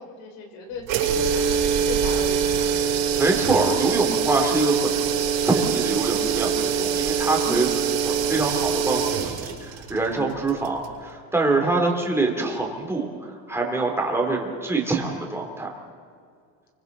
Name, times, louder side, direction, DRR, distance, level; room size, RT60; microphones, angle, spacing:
voice 1, 0.0-3.1 7.4-7.6, left 3 dB, 75° left, 2 dB, 4.4 m, -38 dB
sound 1, 0.8-11.0, right 7 dB, 65° right, 6.5 m, -24 dB
voice 2, 3.2-4.9 5.4-7.7 8.0-15.8, right 3 dB, 5° right, 0 dB, 3.1 m, -25 dB
29.5 x 24.5 x 4.1 m, 2.2 s
cardioid pair, 155°, 43 cm